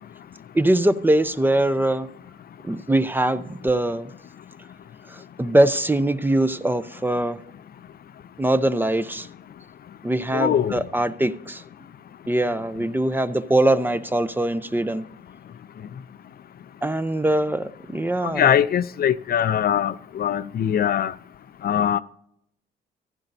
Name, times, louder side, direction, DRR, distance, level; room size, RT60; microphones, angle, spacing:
voice 1, 0.5-2.1 2.6-4.1 5.1-7.4 8.4-9.3 10.0-11.6 12.3-15.0 16.8-18.5, right 1 dB, 10° right, 0.5 m, -22 dB
voice 2, 10.3-10.8 18.3-21.1 21.6-22.0, left 9 dB, 50° left, 0.4 m, -21 dB
15.0 x 10.5 x 2.7 m
cardioid pair, 90°, 20 cm